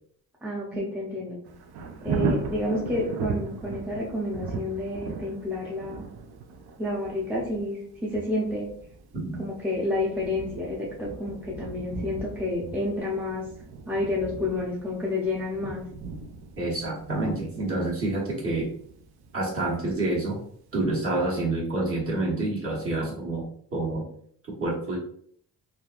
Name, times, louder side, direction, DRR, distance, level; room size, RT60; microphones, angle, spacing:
voice 1, 0.4-1.4 2.0-6.0 6.8-8.7 9.4-13.5 13.9-15.8, left 2 dB, 5° right, -5 dB, 0.5 m, -30 dB
Thunder, 1.4-20.2 20.7-20.8, right 4 dB, 80° right, 0.5 m, -38 dB
voice 2, 16.6-18.7 19.3-20.4 20.7-23.5 23.7-24.1 24.6-25.0, right 2 dB, 35° right, -5 dB, 1.2 m, -28 dB
3.1 x 2.5 x 2.3 m, 0.63 s
cardioid pair, 135°, 38 cm